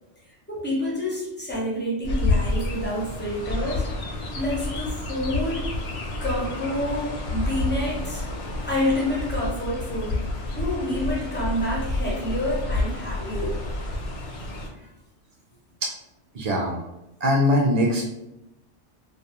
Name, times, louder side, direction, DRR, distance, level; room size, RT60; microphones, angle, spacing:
voice 1, 0.5-3.9 4.3-5.6 6.2-8.2 8.7-10.2 10.6-13.6 14.8-14.9, left 1 dB, 15° left, -5 dB, 0.4 m, -28 dB
Chirp tweet, 2.0-14.7, left 2 dB, 65° left, 0.7 m, -29 dB
voice 2, 13.1-13.5 16.3-16.8 17.2-18.1, left 1 dB, 65° right, -1 dB, 0.4 m, -22 dB
2.3 x 2.3 x 2.8 m, 0.93 s
omnidirectional pair, 1.2 m